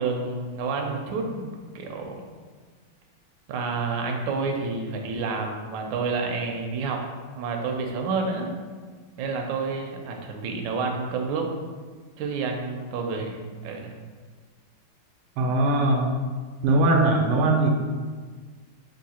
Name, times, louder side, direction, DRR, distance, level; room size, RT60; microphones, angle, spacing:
voice 1, 0.0-1.5 1.7-2.2 3.5-7.0 7.3-8.5 9.2-11.5 12.2-13.9, right 4 dB, 75° right, 2 dB, 1.1 m, -29 dB
voice 2, 15.4-16.2 16.6-17.8, right 2 dB, 90° right, 1 dB, 1.6 m, -21 dB
3.7 x 2.6 x 4.2 m, 1.5 s
omnidirectional pair, 2.4 m